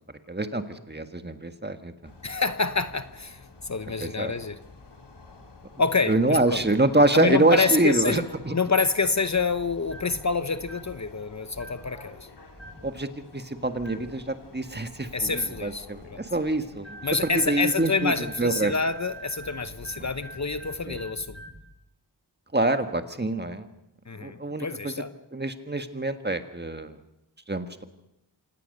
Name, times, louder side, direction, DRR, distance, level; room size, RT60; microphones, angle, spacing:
voice 1, 0.3-1.9 4.0-4.3 6.1-8.5 12.8-13.1 13.3-17.0 17.3-18.7 20.0-20.1 20.9-21.0 22.5-23.7 24.2-24.9 25.3-26.9 27.5-27.8, right 2 dB, 25° right, 8 dB, 1.7 m, -25 dB
sound 1, 2.0-20.8, left 3 dB, 75° left, 3.3 m, -50 dB
voice 2, 2.2-4.6 5.8-6.6 7.1-8.2 8.5-12.2 15.1-16.2 17.0-21.4 24.1-25.1, left 4 dB, 40° left, 12 dB, 0.9 m, -27 dB
sound 2, 9.8-10.2 10.6-11.0 11.5-11.9 12.5-12.9 13.8-14.1 15.3-15.6 16.8-21.6, right 2 dB, ahead, 7.0 m, -44 dB
26.5 x 18.0 x 6.7 m, 0.88 s
wide cardioid pair, 95°, 42 cm